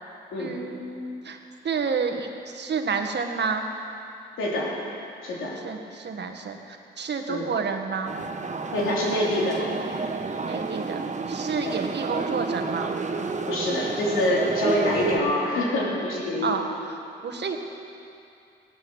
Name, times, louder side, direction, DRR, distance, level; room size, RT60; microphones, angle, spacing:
voice 1, 0.4-1.4 1.6-3.7 5.6-8.1 10.4-11.0 11.3-12.9 16.4-16.6 17.2-17.6, right 5 dB, 60° right, 4 dB, 1.6 m, -29 dB
voice 2, 4.4-4.7 5.2-5.6 7.3-7.5 8.7-9.6 11.6-11.8 13.5-16.6, left 1 dB, 85° left, -4 dB, 3.5 m, -26 dB
sound 1, 8.1-15.2, right 4 dB, 35° right, 1.1 m, -30 dB
16.0 x 12.5 x 6.3 m, 2.6 s
supercardioid pair, 55°, 20 cm